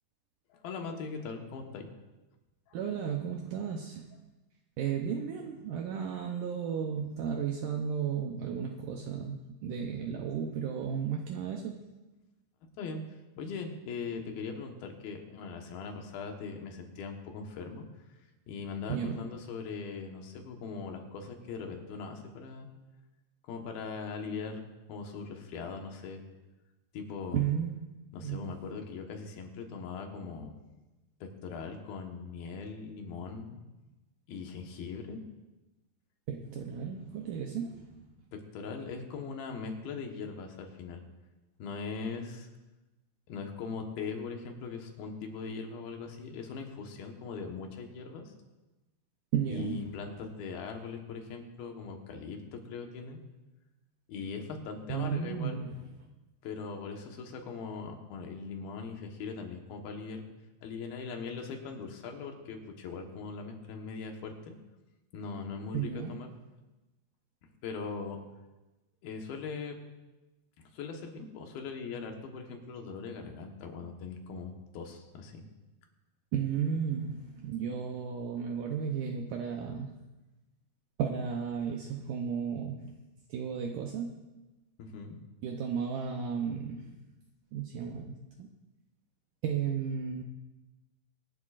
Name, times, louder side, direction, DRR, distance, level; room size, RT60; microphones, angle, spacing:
voice 1, 0.5-1.8 2.7-2.8 12.8-13.0 13.4-17.8 18.5-22.7 23.5-24.6 24.9-26.2 26.9-27.4 28.1-30.5 31.2-33.6 34.3-35.2 38.3-41.0 41.6-42.5 43.3-48.3 49.4-53.2 54.1-55.7 56.4-60.2 60.6-64.5 65.1-66.3 67.6-68.2 69.0-69.8 70.7-75.4 84.8-85.2, left 5 dB, 75° left, 3 dB, 3.2 m, -40 dB
voice 2, 2.7-4.1 4.8-11.8 18.9-19.2 27.3-27.8 28.2-28.6 36.3-37.9 49.3-49.8 54.9-55.7 65.7-66.2 76.3-79.9 81.0-82.9 83.3-84.2 85.4-86.9 87.5-88.5 89.4-90.2, right 7 dB, 75° right, 2 dB, 2.1 m, -34 dB
23.5 x 11.5 x 2.5 m, 1.1 s
omnidirectional pair, 4.4 m